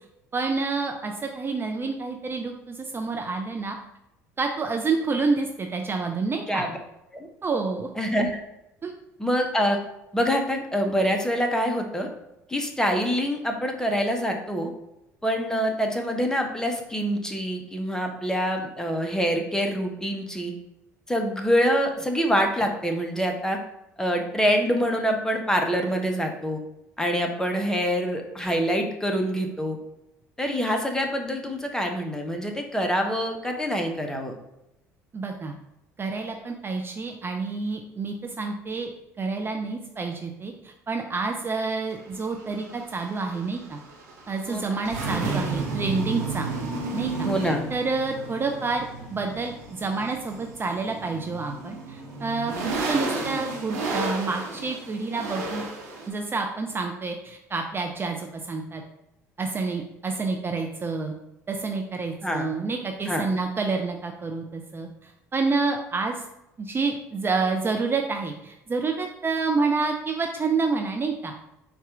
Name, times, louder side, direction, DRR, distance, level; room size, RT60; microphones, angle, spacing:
voice 1, 0.3-3.8 4.4-6.6 7.4-7.9 8.8-8.9 35.1-35.5 36.0-38.9 39.2-43.8 44.3-46.5 46.9-52.5 52.9-55.7 56.1-58.8 59.4-61.1 61.5-66.2 66.6-71.3, right 4 dB, 25° right, 3 dB, 0.4 m, -28 dB
voice 2, 8.0-8.3 9.2-9.8 10.1-12.1 12.5-14.7 15.2-20.5 21.1-23.6 24.0-26.6 27.0-29.8 30.4-34.3 44.4-44.7 47.2-47.6 62.2-62.5 63.1-63.3, equal, 5° left, 3 dB, 0.7 m, -25 dB
sound 1, 41.9-56.1, right 3 dB, 80° right, 0.7 m, -33 dB
4.1 x 2.4 x 3.6 m, 0.89 s
hypercardioid pair, 60°, 8 cm